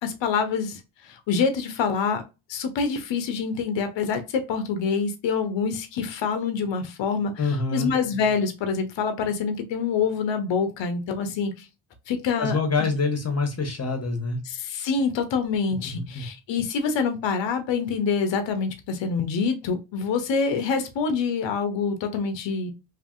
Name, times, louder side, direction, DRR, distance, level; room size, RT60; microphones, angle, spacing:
voice 1, 0.0-2.2 2.5-11.7 12.1-12.6 14.5-22.7, left 5 dB, 65° left, 8 dB, 0.9 m, -26 dB
voice 2, 7.4-7.9 12.4-14.4 15.8-16.3, left 4 dB, 30° left, 4 dB, 1.3 m, -26 dB
2.8 x 2.6 x 2.5 m, 0.27 s
supercardioid pair, 60°, 47 cm